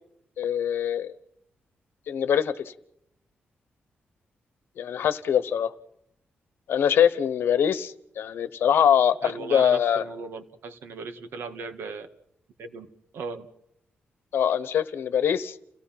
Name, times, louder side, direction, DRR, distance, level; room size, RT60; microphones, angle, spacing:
voice 1, 0.4-1.1 2.1-2.7 4.8-5.7 6.7-10.0 14.3-15.5, left 8 dB, 80° left, 14 dB, 1.1 m, -23 dB
voice 2, 9.2-12.1 12.6-12.9 13.1-13.5, right 4 dB, 80° right, 8 dB, 1.8 m, -37 dB
30.0 x 17.0 x 5.9 m, 0.75 s
wide cardioid pair, 170°, 4 cm